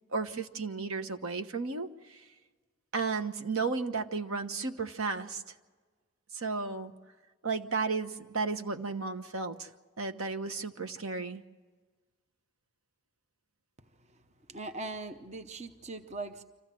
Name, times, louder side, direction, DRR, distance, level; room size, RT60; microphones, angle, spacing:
voice 1, 0.1-2.2 2.9-5.4 6.3-6.9 7.4-9.7 10.0-11.4, right 4 dB, 75° right, 8 dB, 1.1 m, -33 dB
voice 2, 14.5-16.4, right 2 dB, 30° right, 8 dB, 0.8 m, -40 dB
26.0 x 15.5 x 7.6 m, 1.4 s
head